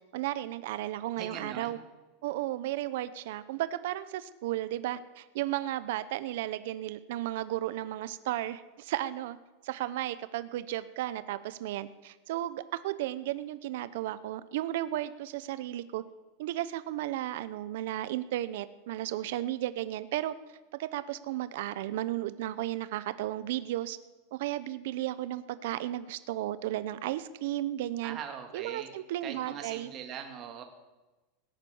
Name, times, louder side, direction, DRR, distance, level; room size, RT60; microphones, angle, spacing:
voice 1, 0.1-1.8 2.2-9.4 9.6-16.0 16.4-20.3 20.8-24.0 24.3-28.2 28.5-29.9, right 14 dB, 65° right, 14 dB, 0.8 m, -34 dB
voice 2, 1.2-1.7 28.0-28.9 29.2-30.6, right 8 dB, 30° right, 4 dB, 1.9 m, -41 dB
17.5 x 10.5 x 7.1 m, 1.1 s
supercardioid pair, 165°, 0 cm